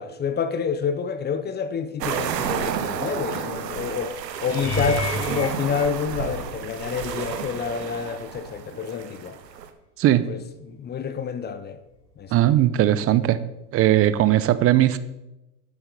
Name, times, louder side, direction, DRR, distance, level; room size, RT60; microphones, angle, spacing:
voice 1, 0.0-9.4 10.3-11.8 12.2-12.5, left 6 dB, 20° left, 0.6 m, -28 dB
sound 1, 2.0-9.7, right 8 dB, 85° right, 1.1 m, -31 dB
sound 2, 4.5-6.8 7.5-7.9 8.3-8.4 12.8-12.9, left 4 dB, 40° left, 3.5 m, -32 dB
voice 2, 12.3-13.4 13.7-15.0, right 13 dB, 30° right, 0.5 m, -18 dB
10.5 x 7.9 x 4.0 m
hypercardioid pair, 95°, 49 cm